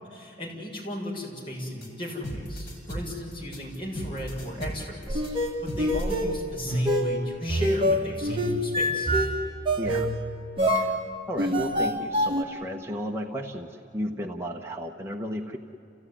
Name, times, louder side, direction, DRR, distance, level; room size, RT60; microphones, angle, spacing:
voice 1, 0.1-9.1, left 1 dB, 30° left, -3 dB, 6.8 m, -36 dB
sound 1, 1.8-6.2, equal, 55° left, 6.4 m, -36 dB
sound 2, 5.1-12.4, equal, 30° right, 2.1 m, -26 dB
voice 2, 9.8-10.1 10.7-15.6, equal, 15° right, 0 dB, 1.2 m, -34 dB
29.0 x 16.5 x 9.9 m, 2.7 s
head